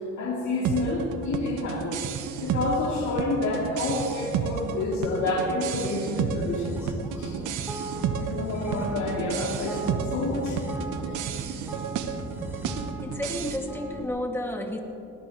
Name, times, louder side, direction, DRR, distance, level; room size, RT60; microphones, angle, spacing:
voice 1, 0.2-2.1 2.4-7.4 7.8-10.6 11.0-11.2, left 2 dB, 65° left, -4 dB, 3.0 m, -29 dB
sound 1, 0.6-13.6, right 7 dB, 85° right, 1.0 m, -32 dB
sound 2, 6.4-14.1, right 1 dB, 10° right, 2.5 m, -37 dB
voice 2, 13.0-14.8, left 1 dB, 10° left, 1 dB, 2.1 m, -31 dB
20.5 x 17.5 x 3.1 m, 3.0 s
cardioid pair, 90°, 30 cm